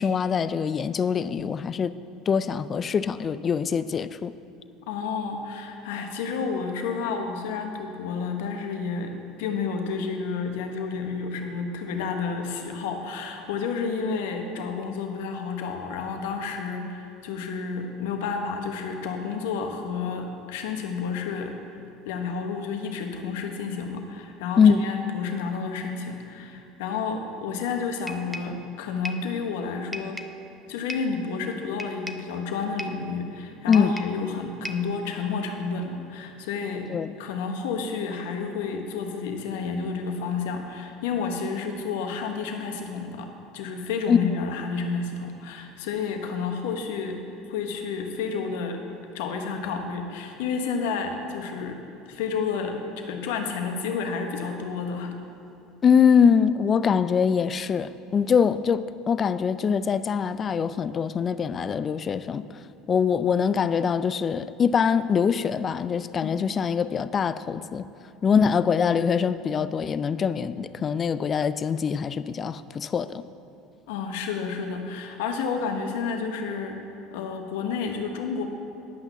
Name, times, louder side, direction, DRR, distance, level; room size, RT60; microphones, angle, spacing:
voice 1, 0.0-1.9 2.3-4.3 24.6-24.8 33.7-33.9 36.9-37.1 44.1-44.2 55.8-62.5 62.9-67.9 68.2-73.2, left 6 dB, 35° left, 14 dB, 0.4 m, -23 dB
voice 2, 4.9-21.6 22.0-30.2 30.7-36.9 37.2-43.3 43.5-47.2 47.5-48.8 49.1-51.8 52.0-55.1 66.2-66.5 73.9-76.8 77.1-78.4, left 5 dB, 80° left, 4 dB, 1.1 m, -30 dB
sound 1, 28.1-28.6 29.0-29.3 29.9-30.4 30.9-31.2 31.8-32.3 32.8-33.1 33.7-34.2 34.6-34.9, equal, ahead, 0.7 m, -37 dB
10.5 x 5.9 x 7.0 m, 2.6 s
hypercardioid pair, 85°, 0 cm